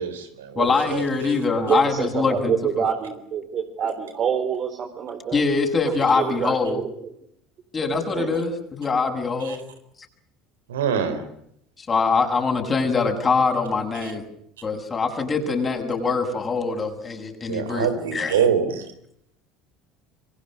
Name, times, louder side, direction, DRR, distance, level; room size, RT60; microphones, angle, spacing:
voice 1, 0.0-1.0 9.4-9.6 10.7-11.3 14.0-14.1 17.5-18.8, right 7 dB, 80° right, 9 dB, 4.1 m, -25 dB
voice 2, 0.6-2.5 5.3-6.8 7.7-9.6 11.8-14.2 14.6-18.3, left 4 dB, 30° left, 4 dB, 7.2 m, -23 dB
voice 3, 1.6-5.4 6.1-7.0 8.1-8.3, right 7 dB, 45° right, 3 dB, 4.3 m, -26 dB
27.0 x 24.5 x 6.4 m, 0.74 s
hypercardioid pair, 65°, 0 cm